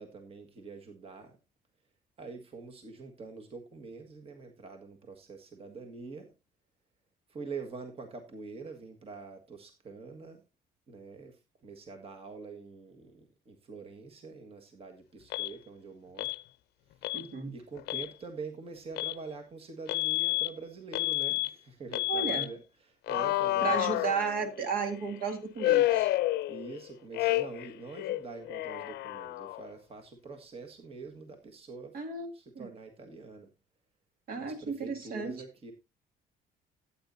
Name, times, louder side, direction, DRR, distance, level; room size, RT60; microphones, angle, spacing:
voice 1, 0.0-1.4 2.2-6.3 7.3-10.4 10.9-16.3 17.5-24.1 26.5-32.0 32.3-33.5 34.4-35.7, right 4 dB, 35° right, 1.7 m, -45 dB
Alarm, 15.3-15.5 16.2-16.4 17.0-17.2 17.8-18.1 19.0-19.2 19.9-20.5 20.9-21.5 21.9-22.5 23.1-24.6 25.6-26.8 27.1-27.7 28.0-29.7, left 17 dB, 80° left, 0.6 m, -29 dB
voice 2, 17.1-17.5 22.1-22.5 23.6-26.1 31.9-32.7 34.3-35.3, right 5 dB, 60° right, 2.2 m, -34 dB
13.5 x 8.8 x 2.7 m
cardioid pair, 110°, 17 cm